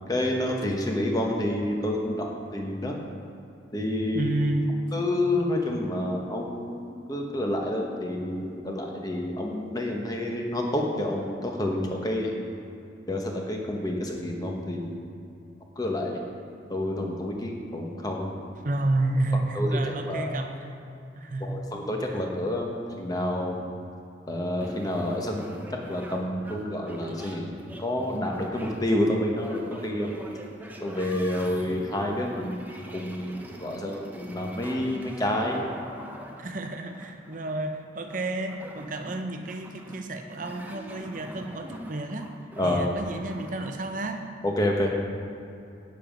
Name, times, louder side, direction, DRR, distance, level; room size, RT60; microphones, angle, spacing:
voice 1, 0.1-3.0 3.7-4.3 4.9-6.8 7.1-12.3 13.1-15.0 15.8-16.2 16.7-18.3 19.5-19.8 20.0-20.3 21.4-23.6 24.3-25.4 25.9-27.5 27.8-30.1 30.8-35.7 42.6-42.8 44.4-44.9, left 1 dB, 20° left, 1 dB, 1.1 m, -28 dB
voice 2, 4.1-4.7 18.5-20.7 21.1-21.6 36.4-42.3 42.6-44.3, right 2 dB, 45° right, 5 dB, 0.7 m, -30 dB
sound 1, 24.6-43.7, equal, 10° right, 0.7 m, -43 dB
9.1 x 7.6 x 5.2 m, 2.6 s
head